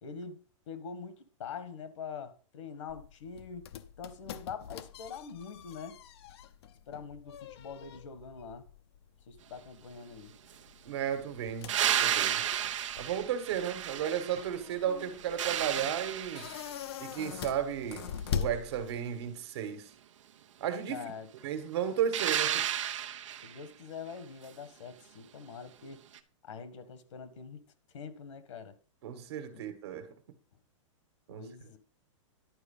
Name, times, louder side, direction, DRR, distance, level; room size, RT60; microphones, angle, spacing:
voice 1, 0.0-3.7 4.0-6.0 6.9-8.6 9.3-10.3 20.9-21.3 23.4-26.0 26.4-27.6 27.9-28.8 29.5-29.6 31.3-31.8, left 6 dB, 70° left, 1.6 m, -44 dB
sound 1, 2.9-19.3, left 8 dB, 55° left, 0.8 m, -43 dB
voice 2, 10.8-12.5 13.0-16.6 17.0-19.9 20.6-21.1 21.4-22.7 29.0-30.1 31.3-31.5, right 9 dB, 55° right, 1.7 m, -34 dB
sound 2, 11.7-14.6 15.0-16.8 22.1-23.6 26.1-26.2, right 10 dB, 70° right, 1.0 m, -32 dB
11.5 x 4.6 x 5.5 m
supercardioid pair, 170°, 17 cm